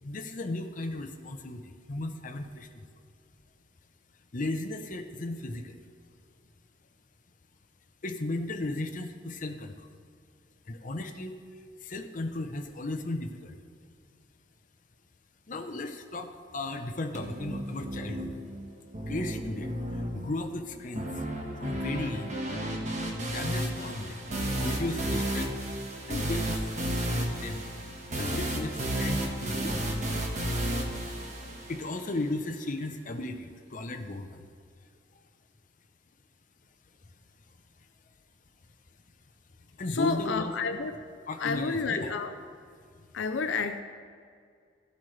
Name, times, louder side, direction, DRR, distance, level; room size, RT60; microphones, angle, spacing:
voice 1, 0.0-2.9 4.3-5.8 8.0-9.9 10.7-11.4 11.8-13.6 15.5-18.3 19.1-21.3 21.6-22.4 23.3-24.2 24.6-25.5 26.1-26.6 27.1-27.7 28.2-29.8 31.7-34.4 39.8-40.8 41.3-42.1, left 2 dB, 45° left, 5 dB, 0.7 m, -35 dB
sound 1, 17.1-32.1, right 1 dB, 40° right, 1.4 m, -33 dB
voice 2, 39.9-41.0 41.4-42.3 43.1-43.8, left 4 dB, 75° left, 8 dB, 0.5 m, -30 dB
15.0 x 8.2 x 3.3 m, 2.2 s
head